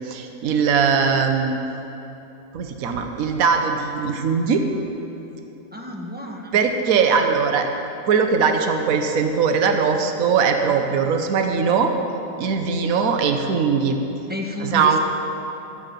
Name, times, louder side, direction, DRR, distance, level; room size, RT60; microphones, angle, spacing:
voice 1, 0.0-1.6 2.5-4.6 6.5-7.7 8.1-11.9 12.4-14.0 14.6-15.0, right 6 dB, 65° right, 5 dB, 1.3 m, -20 dB
voice 2, 5.7-6.6 14.3-15.0, left 1 dB, 5° right, 0 dB, 1.0 m, -31 dB
13.0 x 12.0 x 5.3 m, 3.0 s
omnidirectional pair, 1.7 m